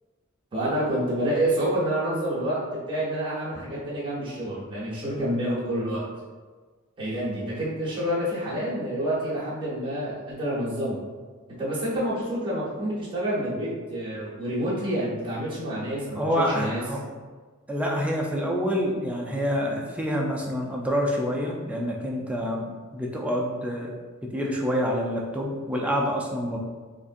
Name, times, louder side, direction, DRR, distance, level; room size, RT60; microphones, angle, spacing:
voice 1, 0.5-2.6 2.9-6.0 7.0-11.0 11.6-16.8, right 1 dB, 25° right, -9 dB, 1.2 m, -28 dB
voice 2, 16.1-17.0 17.7-23.9 24.2-26.6, equal, 5° right, -1 dB, 0.4 m, -27 dB
3.8 x 2.5 x 2.5 m, 1.4 s
head